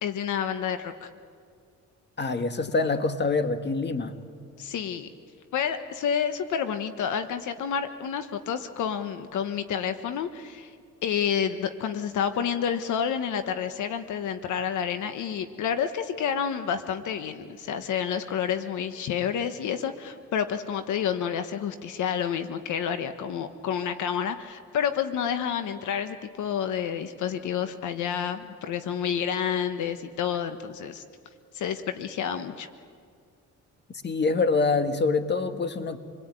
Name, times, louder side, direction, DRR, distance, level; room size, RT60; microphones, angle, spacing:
voice 1, 0.0-1.1 4.6-5.1 5.5-10.7 11.0-31.0 31.5-32.7, left 8 dB, 75° left, 9 dB, 1.3 m, -29 dB
voice 2, 2.2-4.2 34.0-36.0, left 3 dB, 35° left, 8 dB, 1.9 m, -25 dB
28.0 x 20.5 x 9.1 m, 2.2 s
cardioid pair, 90°, 30 cm